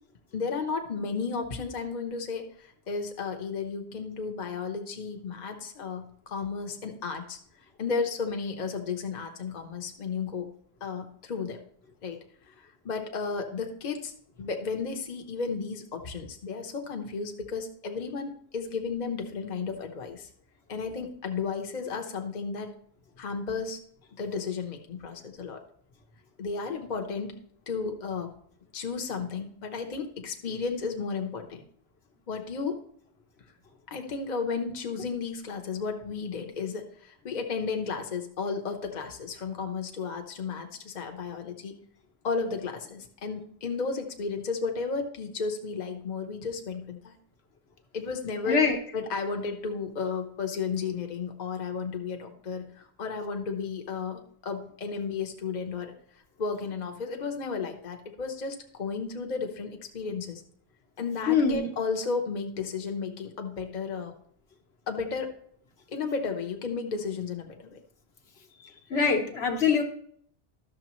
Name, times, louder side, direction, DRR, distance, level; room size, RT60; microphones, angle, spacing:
voice 1, 0.3-7.4 7.8-10.5 10.8-11.6 12.0-12.2 12.5-14.1 14.4-20.3 20.7-22.8 23.2-23.8 24.1-25.6 26.4-28.3 28.7-31.6 32.3-32.8 33.9-41.8 42.2-47.2 47.9-48.6 48.9-55.9 56.4-60.4 61.0-64.1 64.9-65.3 65.9-67.8, left 5 dB, 45° left, 4 dB, 0.9 m, -33 dB
voice 2, 48.5-48.8 61.3-61.7 68.6-69.8, left 5 dB, 80° left, 3 dB, 1.3 m, -24 dB
12.0 x 6.5 x 3.0 m, 0.64 s
omnidirectional pair, 1.1 m